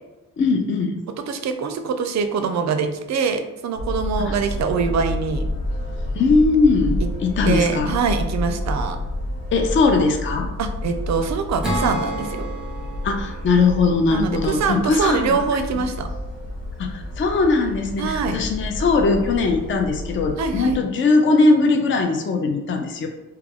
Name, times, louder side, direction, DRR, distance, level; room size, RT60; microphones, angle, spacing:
voice 1, 0.4-1.0 4.2-4.4 6.2-8.0 9.5-10.5 13.0-15.4 16.8-23.1, left 3 dB, 35° left, 4 dB, 0.4 m, -20 dB
voice 2, 1.3-5.5 7.4-9.0 10.6-12.5 14.1-16.1 18.0-18.4 20.4-20.8, right 5 dB, 55° right, 7 dB, 0.4 m, -24 dB
sound 1, 3.7-20.8, left 1 dB, 70° left, 1.1 m, -29 dB
Acoustic guitar / Strum, 11.6-15.1, right 1 dB, ahead, 0.8 m, -31 dB
2.3 x 2.2 x 3.4 m, 1.0 s
cardioid pair, 80°, 34 cm